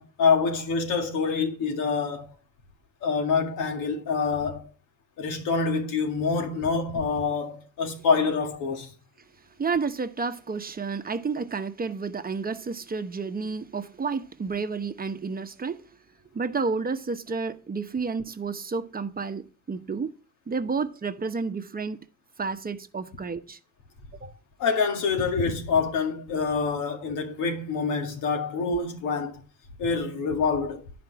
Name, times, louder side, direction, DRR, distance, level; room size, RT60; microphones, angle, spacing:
voice 1, 0.0-2.3 3.0-4.7 5.2-8.9 24.6-29.4 29.8-30.8, left 5 dB, 90° left, 2.1 m, -26 dB
voice 2, 9.6-15.9 16.3-20.1 20.5-22.0 22.4-23.6 24.2-24.3, right 4 dB, 30° right, 1.0 m, -31 dB
10.0 x 5.2 x 4.7 m
cardioid pair, 90°, 30 cm